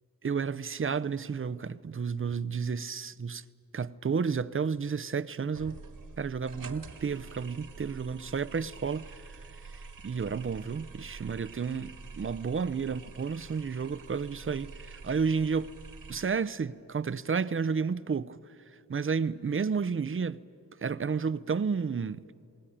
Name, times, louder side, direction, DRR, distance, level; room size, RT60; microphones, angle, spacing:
voice 1, 0.2-3.4 3.7-5.8 6.2-9.1 9.7-15.7 16.1-18.4 18.9-20.4 20.8-22.2, right 5 dB, 35° right, 0.6 m, -31 dB
sound 1, 5.5-16.3, right 4 dB, 65° right, 1.9 m, -47 dB
27.5 x 19.5 x 10.0 m
wide cardioid pair, 100°, 36 cm